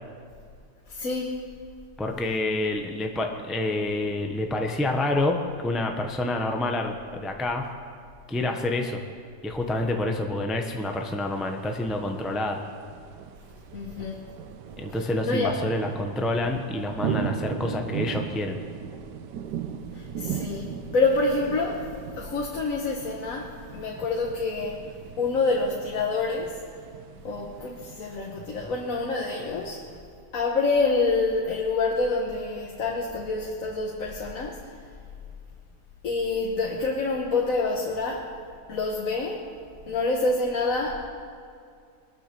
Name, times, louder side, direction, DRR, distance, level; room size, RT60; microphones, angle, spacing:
voice 1, 0.9-1.3 13.7-14.2 15.2-15.5 19.9-21.9 22.2-24.8 25.2-26.5 27.2-29.8 30.3-34.6 36.0-38.3 38.7-39.4 39.9-41.1, left 3 dB, 55° left, -1 dB, 1.6 m, -27 dB
voice 2, 2.0-7.7 8.3-9.0 9.4-12.6 14.8-18.6, left 2 dB, ahead, 3 dB, 0.7 m, -28 dB
sound 1, 10.7-30.0, right 8 dB, 90° right, 1.4 m, -38 dB
22.5 x 9.3 x 6.9 m, 2.4 s
omnidirectional pair, 1.8 m